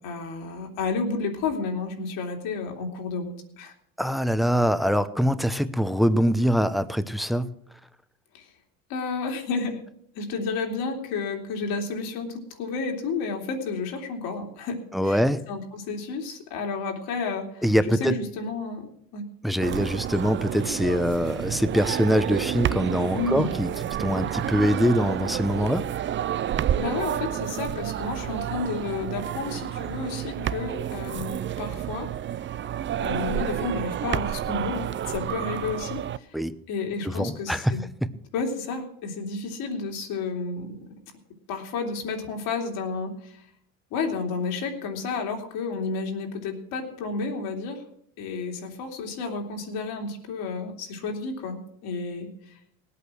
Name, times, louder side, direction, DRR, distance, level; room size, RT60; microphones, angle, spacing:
voice 1, 0.0-3.7 8.3-8.5 8.9-9.8 10.1-19.2 23.1-23.5 26.8-32.1 33.0-36.4 36.7-37.8 38.3-40.8 41.5-43.4 43.9-47.8 48.2-52.6, left 4 dB, 75° left, 2 dB, 3.1 m, -31 dB
voice 2, 4.0-7.5 14.9-15.4 17.6-18.2 19.4-23.7 24.0-25.9 36.3-36.5 37.0-37.8, equal, ahead, 13 dB, 0.8 m, -23 dB
sound 1, 19.6-36.2, right 11 dB, 30° right, 0.5 m, -30 dB
18.5 x 8.5 x 6.2 m, 0.69 s
supercardioid pair, 100°, 37 cm